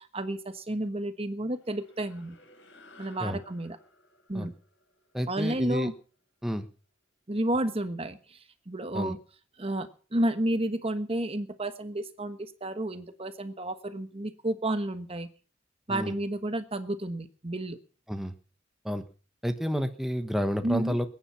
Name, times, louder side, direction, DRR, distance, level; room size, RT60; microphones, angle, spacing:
voice 1, 0.0-2.4 3.0-3.8 4.3-4.5 5.3-5.9 7.3-9.2 9.6-15.3 15.9-17.8 20.6-21.0, right 1 dB, 30° right, 10 dB, 1.3 m, -31 dB
sound 1, 1.5-6.2, left 2 dB, 80° left, 4.4 m, -57 dB
voice 2, 5.1-5.9 6.4-6.7 8.9-9.1 15.9-16.2 18.1-18.3 18.8-19.0 19.4-21.1, equal, ahead, 7 dB, 1.1 m, -30 dB
21.5 x 10.0 x 5.7 m, 0.39 s
head